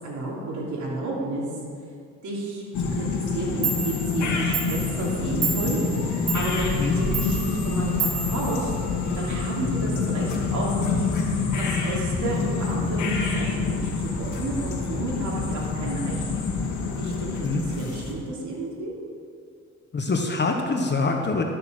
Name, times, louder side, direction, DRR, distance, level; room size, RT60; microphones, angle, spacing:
voice 1, 0.0-1.4 2.2-8.7 9.1-16.3 16.9-17.4 17.7-18.9, right 2 dB, 70° right, -4 dB, 3.1 m, -31 dB
sound 1, 2.7-18.1, left 4 dB, 75° left, 1.9 m, -27 dB
Clock, 3.3-3.4 3.6-9.3, right 5 dB, 50° right, 2.5 m, -32 dB
voice 2, 19.9-21.4, left 3 dB, 35° left, 3 dB, 1.3 m, -24 dB
13.0 x 6.8 x 6.3 m, 2.2 s
cardioid pair, 90°, 30 cm